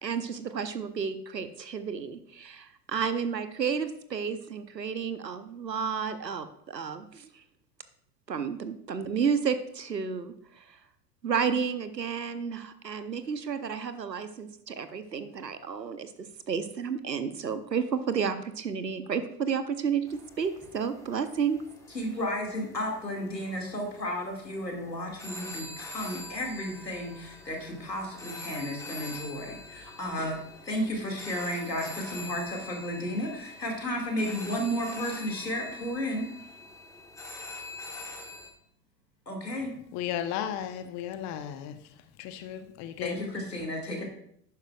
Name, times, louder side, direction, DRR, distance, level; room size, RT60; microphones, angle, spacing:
voice 1, 0.0-7.3 8.3-10.6 11.2-16.1 16.5-21.6, right 6 dB, 90° right, 0.9 m, -31 dB
sound 1, 20.1-38.5, left 2 dB, 5° left, 1.2 m, -44 dB
voice 2, 21.9-30.4 30.6-36.3 39.3-39.7 43.0-44.0, equal, 90° left, 2.3 m, -33 dB
voice 3, 39.9-41.8 42.2-43.2, left 10 dB, 35° left, 0.9 m, -34 dB
11.0 x 9.3 x 2.4 m
figure-of-eight pair, 90°, 48 cm